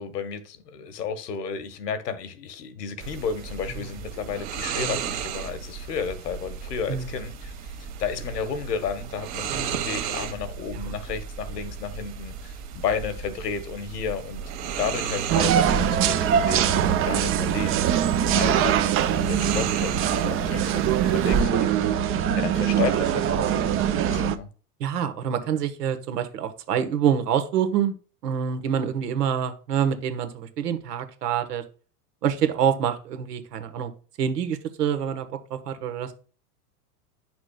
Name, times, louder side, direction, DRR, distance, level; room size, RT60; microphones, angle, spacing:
voice 1, 0.0-21.7 22.4-24.5, left 6 dB, 80° left, 1.3 m, -32 dB
sound 1, 3.0-21.4, right 6 dB, 50° right, 1.5 m, -34 dB
sound 2, 15.3-24.4, right 9 dB, 30° right, 0.6 m, -22 dB
voice 2, 24.8-28.0 28.2-31.6 32.2-33.9 34.2-36.1, right 8 dB, 80° right, 1.3 m, -26 dB
9.6 x 6.0 x 2.3 m
hypercardioid pair, 105°, 47 cm